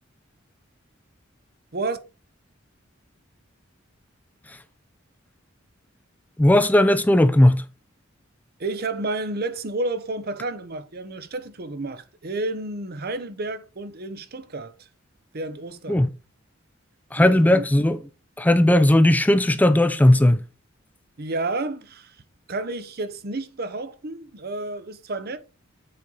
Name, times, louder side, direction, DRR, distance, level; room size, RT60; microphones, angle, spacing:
voice 1, 6.4-7.6 15.9-16.1 17.1-18.0 18.4-20.4, left 1 dB, 10° left, 0.4 m, -17 dB
voice 2, 8.6-14.9 15.3-16.0 17.2-17.7 21.2-22.2 22.5-25.4, right 2 dB, 50° right, 0.8 m, -31 dB
7.6 x 4.3 x 3.9 m
head